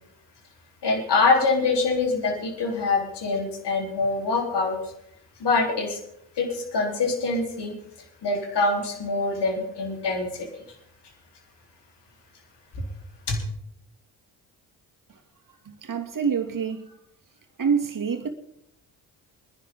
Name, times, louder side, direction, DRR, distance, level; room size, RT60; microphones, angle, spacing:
voice 1, 0.8-4.8 5.4-6.0 6.4-7.7 8.2-10.5 12.7-12.8 13.3-13.4, left 3 dB, 55° left, 3.9 m, -24 dB
voice 2, 15.6-17.0 17.6-18.3, right 6 dB, 40° right, 2.5 m, -26 dB
24.0 x 10.5 x 3.8 m
hypercardioid pair, 45°, 47 cm